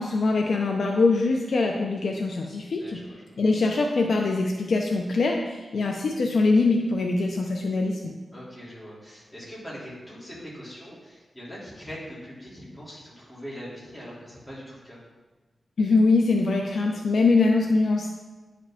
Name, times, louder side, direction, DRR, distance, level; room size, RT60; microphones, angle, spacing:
voice 1, 0.0-3.0 3.4-8.2 15.8-18.1, left 3 dB, 65° left, 2 dB, 0.6 m, -23 dB
voice 2, 2.8-3.2 8.3-15.0 17.5-17.8, equal, 15° left, -8 dB, 2.6 m, -42 dB
9.7 x 4.9 x 3.5 m, 1.2 s
wide cardioid pair, 160°, 0 cm